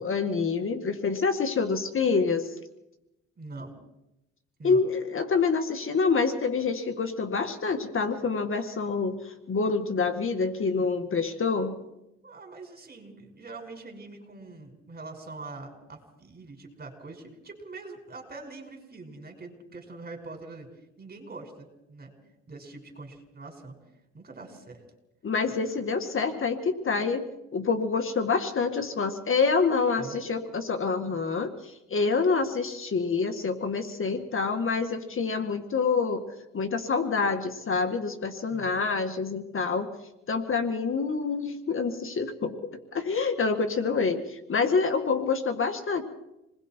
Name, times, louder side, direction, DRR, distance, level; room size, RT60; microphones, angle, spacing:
voice 1, 0.0-2.5 4.6-11.8 25.2-36.2 36.5-39.9 40.3-46.0, left 4 dB, 45° left, 7 dB, 1.9 m, -27 dB
voice 2, 3.4-3.7 4.6-4.8 12.2-20.7 21.0-22.1 22.5-23.8 24.1-24.8 30.0-30.4 38.5-38.8, right 3 dB, 30° right, 4 dB, 5.9 m, -43 dB
27.5 x 20.5 x 4.6 m, 0.89 s
cardioid pair, 90°, 30 cm